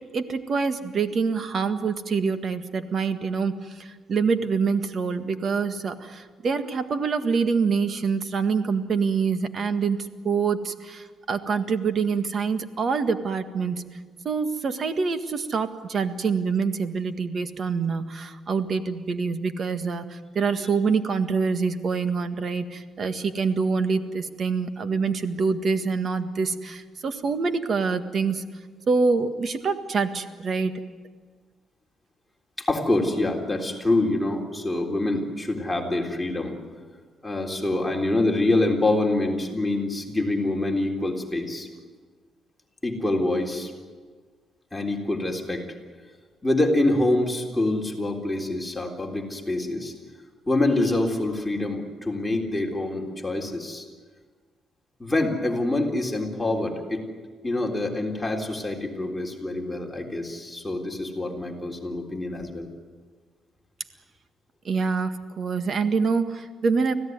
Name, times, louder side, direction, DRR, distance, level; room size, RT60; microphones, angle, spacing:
voice 1, 0.0-10.0 10.2-13.8 14.3-28.4 28.9-30.7 64.7-66.9, right 5 dB, 50° right, 9 dB, 1.7 m, -26 dB
voice 2, 32.6-36.6 37.2-41.7 42.8-43.7 44.7-45.7 46.4-49.9 50.5-53.9 55.0-57.1 57.4-62.7, left 2 dB, 10° left, 0 dB, 3.7 m, -26 dB
25.5 x 16.5 x 9.6 m, 1.5 s
cardioid pair, 90°, 0 cm